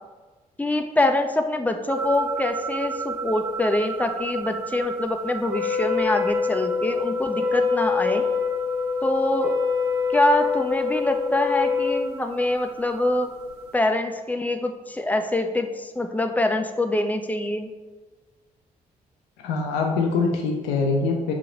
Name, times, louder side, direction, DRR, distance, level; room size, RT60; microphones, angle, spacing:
voice 1, 0.6-8.2 9.0-9.6 10.1-13.3 13.7-17.7, left 1 dB, 10° left, 6 dB, 0.4 m, -24 dB
sound 1, 1.9-13.8, right 3 dB, 75° right, 0.6 m, -35 dB
Wind instrument woodwind instrument, 5.4-12.1, left 5 dB, 45° right, 1.4 m, -25 dB
voice 2, 19.4-21.3, left 4 dB, 65° left, 1 dB, 0.5 m, -23 dB
7.0 x 2.8 x 2.5 m, 1.3 s
figure-of-eight pair, 40°, 19 cm